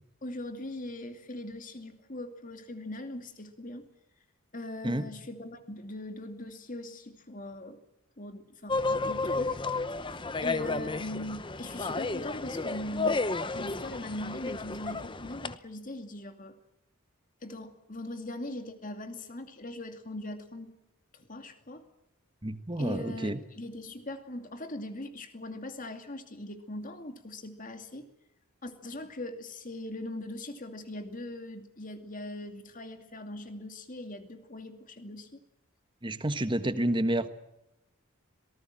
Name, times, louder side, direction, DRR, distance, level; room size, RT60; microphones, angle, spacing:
voice 1, 0.2-3.8 4.5-7.8 8.2-9.6 10.1-13.2 13.5-16.5 17.4-20.7 21.1-21.8 22.8-28.1 28.6-35.4, left 1 dB, 40° left, 7 dB, 2.5 m, -40 dB
sound 1, 8.7-15.6, left 3 dB, 20° left, 0.8 m, -32 dB
voice 2, 22.4-23.4 36.0-37.3, right 1 dB, 20° right, 11 dB, 1.3 m, -29 dB
26.0 x 19.0 x 7.6 m, 0.88 s
head